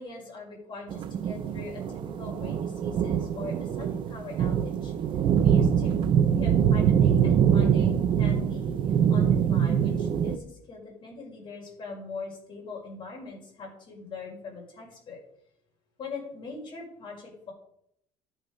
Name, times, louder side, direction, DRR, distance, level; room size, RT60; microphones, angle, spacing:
voice 1, 0.0-4.9 5.4-6.0 6.4-8.7 9.1-15.2 16.0-17.5, left 3 dB, 40° left, -1 dB, 5.1 m, -41 dB
sound 1, 0.9-10.4, right 8 dB, 40° right, 0.5 m, -24 dB
12.5 x 9.0 x 5.2 m, 0.73 s
cardioid pair, 165°, 13 cm